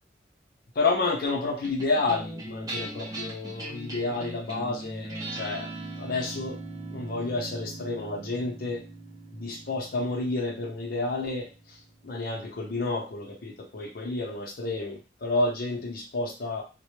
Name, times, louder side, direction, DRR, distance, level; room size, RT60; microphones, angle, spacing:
voice 1, 0.7-5.7 6.0-6.6 6.9-8.8 9.3-11.8 12.0-16.6, left 3 dB, 55° left, -1 dB, 0.5 m, -30 dB
sound 1, 1.6-12.2, right 2 dB, 20° right, 0.6 m, -40 dB
2.0 x 2.0 x 3.0 m, 0.31 s
head